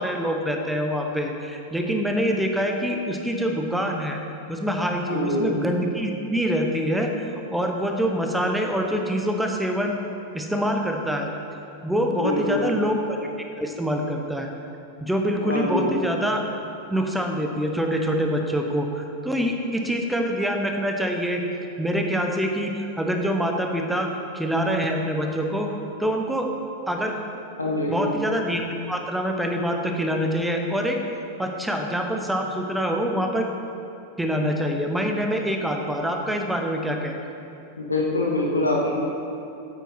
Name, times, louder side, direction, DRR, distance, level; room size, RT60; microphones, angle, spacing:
voice 1, 0.0-4.2 4.5-7.1 7.5-10.0 10.3-11.3 11.8-13.3 13.6-14.5 15.0-16.4 16.9-21.4 21.8-24.1 24.3-25.7 26.0-26.5 26.9-27.1 27.9-31.0 31.4-33.5 34.2-37.2, equal, 5° right, 2 dB, 0.9 m, -25 dB
voice 2, 5.1-5.4 12.2-12.7 15.4-15.9 27.6-28.0 37.8-38.9, left 2 dB, 80° left, -2 dB, 1.6 m, -24 dB
8.8 x 8.0 x 4.5 m, 2.7 s
figure-of-eight pair, 90°, 0 cm